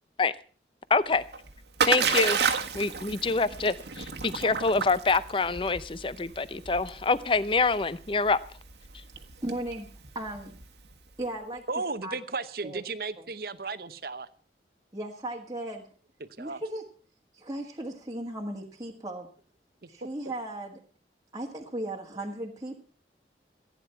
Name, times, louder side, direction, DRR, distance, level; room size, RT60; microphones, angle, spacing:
voice 1, 0.9-1.2 1.8-2.4 2.7-8.4, left 4 dB, 30° left, 16 dB, 0.6 m, -26 dB
Splash splatter, 1.1-10.9, right 6 dB, 80° right, 1.5 m, -32 dB
voice 2, 9.4-9.9 10.1-10.6 11.2-11.6 12.0-12.1 12.6-12.8 13.2-13.3 14.9-15.9 16.4-16.8 17.3-19.3 19.9-20.8 21.3-22.8, right 1 dB, 20° right, -1 dB, 1.6 m, -36 dB
voice 3, 11.7-14.3 16.4-16.6, right 3 dB, 55° right, 13 dB, 0.9 m, -34 dB
15.5 x 9.9 x 5.7 m, 0.40 s
head